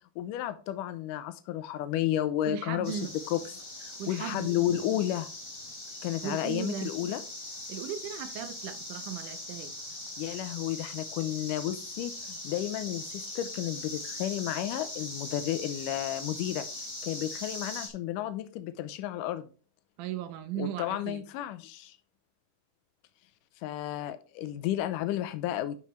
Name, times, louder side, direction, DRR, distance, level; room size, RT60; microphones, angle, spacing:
voice 1, 0.2-3.0 3.3-3.5 3.8-5.3 6.0-7.2 10.2-19.5 20.6-22.0 23.6-25.8, left 12 dB, 85° left, 11 dB, 2.3 m, -32 dB
voice 2, 2.5-3.1 4.0-4.5 6.2-6.9 7.7-9.8 20.0-21.3, right 9 dB, 75° right, 10 dB, 2.3 m, -37 dB
sound 1, 2.8-17.9, left 2 dB, 20° left, 0.7 m, -41 dB
11.0 x 5.7 x 3.1 m, 0.37 s
omnidirectional pair, 3.7 m